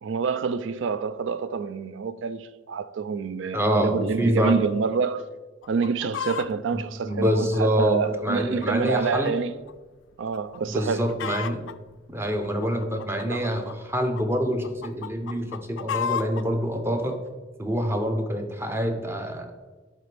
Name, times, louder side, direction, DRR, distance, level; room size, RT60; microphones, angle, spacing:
voice 1, 0.0-5.3 5.7-9.5 10.2-11.1 13.2-13.5, right 5 dB, 80° right, 0.4 m, -27 dB
voice 2, 3.5-4.6 6.7-9.3 10.7-11.6 12.1-17.2 17.6-19.5, equal, 15° right, 0.7 m, -26 dB
Chicken rooster, 5.6-6.5 7.1-9.3 9.7-9.8 10.3-10.6 10.8-11.7 12.4-14.2 14.6-16.4 17.1-17.2, left 8 dB, 75° left, 0.3 m, -33 dB
11.0 x 4.2 x 3.4 m
head